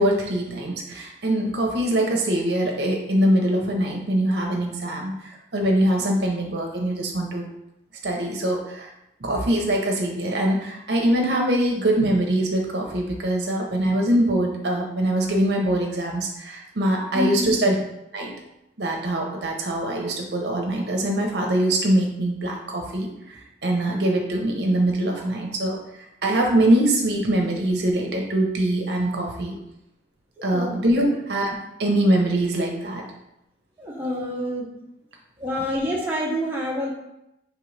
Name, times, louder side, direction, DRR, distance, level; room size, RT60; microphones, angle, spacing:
voice 1, 0.0-7.4 8.0-8.9 9.2-17.8 18.1-18.3 18.8-25.8 26.2-29.5 30.4-31.5 31.8-33.0, right 1 dB, 60° right, 0 dB, 0.8 m, -23 dB
voice 2, 17.1-17.5 30.4-31.1 33.8-34.7 35.4-36.9, left 1 dB, 10° right, -5 dB, 0.9 m, -27 dB
5.0 x 3.2 x 3.3 m, 0.85 s
head